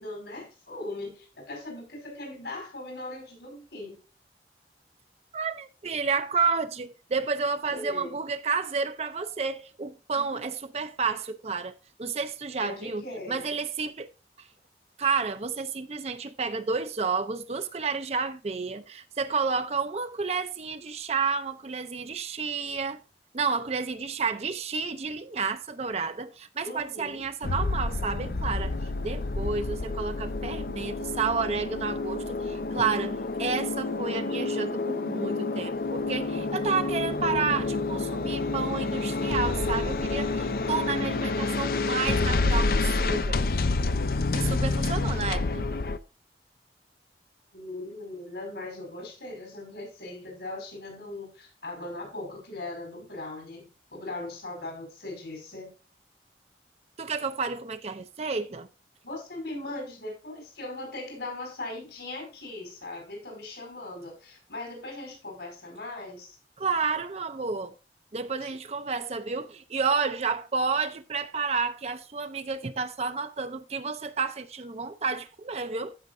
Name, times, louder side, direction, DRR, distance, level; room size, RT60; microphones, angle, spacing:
voice 1, 0.0-4.0 7.7-8.2 10.1-10.4 12.6-13.5 26.6-27.2 47.5-55.7 59.0-66.4 68.4-68.5, left 2 dB, 75° left, 4.7 m, -39 dB
voice 2, 5.3-14.1 15.0-23.0 23.3-28.7 29.0-43.4 44.3-45.7 57.0-58.7 66.6-67.7 68.1-76.0, right 5 dB, 35° right, 0.5 m, -30 dB
sound 1, 27.4-46.0, left 3 dB, 55° left, 0.5 m, -28 dB
14.0 x 5.7 x 2.6 m
head